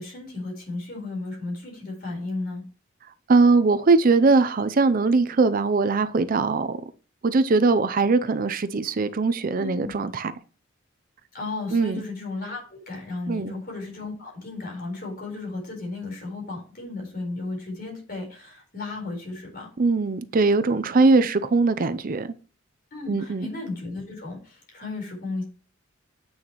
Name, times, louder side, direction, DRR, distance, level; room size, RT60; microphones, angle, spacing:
voice 1, 0.0-2.6 9.6-10.0 11.3-19.7 21.0-21.2 22.9-25.4, left 3 dB, 50° left, 4.2 m, -34 dB
voice 2, 3.3-6.8 7.2-10.3 11.7-12.0 13.3-13.5 19.8-22.3 23.1-23.5, right 3 dB, 45° right, 0.5 m, -21 dB
8.8 x 6.3 x 3.0 m
head